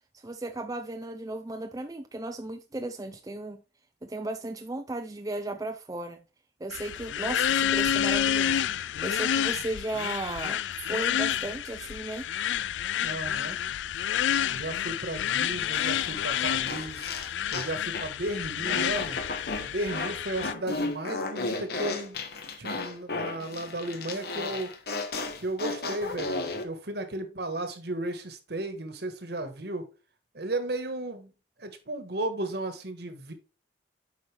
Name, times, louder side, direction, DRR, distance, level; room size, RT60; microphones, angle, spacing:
voice 1, 0.1-3.6 4.0-6.2 6.6-12.3, right 2 dB, 20° right, 0.5 m, -35 dB
sound 1, 6.7-20.5, left 9 dB, 75° left, 0.3 m, -29 dB
voice 2, 13.0-13.6 14.5-17.1 17.5-19.2 19.6-22.2 22.6-24.7 25.4-29.9 30.3-31.3 31.6-33.3, right 1 dB, 60° right, 1.4 m, -34 dB
sound 2, 15.7-18.2 18.6-26.6, left 3 dB, 55° left, 1.2 m, -34 dB
8.6 x 5.6 x 3.4 m
head